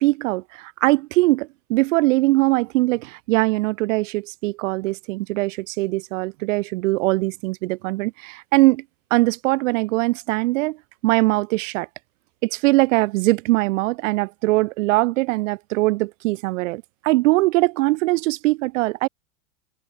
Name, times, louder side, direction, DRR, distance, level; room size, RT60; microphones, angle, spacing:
voice 1, 0.0-8.8 9.1-10.8 11.0-11.9 12.4-19.1, right 21 dB, 65° right, 0.7 m, -21 dB
open air
hypercardioid pair, 95°, 40 cm